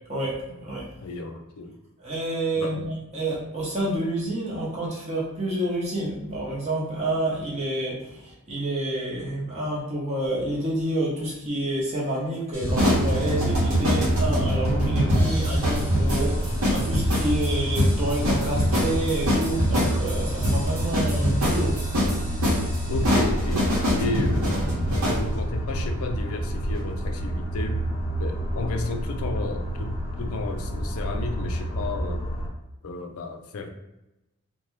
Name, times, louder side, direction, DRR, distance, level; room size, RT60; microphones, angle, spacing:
voice 1, 0.1-0.9 2.0-2.8 3.1-21.8, right 1 dB, 30° right, -6 dB, 0.8 m, -28 dB
voice 2, 1.0-1.8 2.6-2.8 22.9-27.8 28.2-32.2 32.8-33.7, left 3 dB, 75° left, 5 dB, 0.4 m, -32 dB
sound 1, 12.5-25.2, left 1 dB, 70° right, 0.9 m, -25 dB
sound 2, 12.6-32.5, right 1 dB, 40° left, 0.7 m, -27 dB
2.6 x 2.1 x 3.1 m, 0.95 s
head